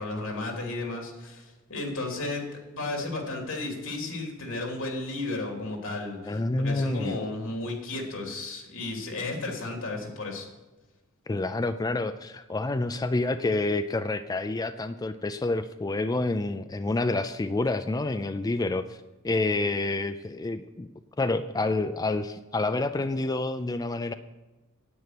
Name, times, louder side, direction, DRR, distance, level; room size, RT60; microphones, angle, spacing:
voice 1, 0.0-10.5, left 2 dB, 80° left, 1 dB, 3.0 m, -33 dB
voice 2, 6.3-7.2 11.3-19.0 19.2-20.9 21.2-24.1, left 2 dB, 20° left, 10 dB, 0.3 m, -28 dB
9.6 x 9.1 x 6.0 m, 1.1 s
head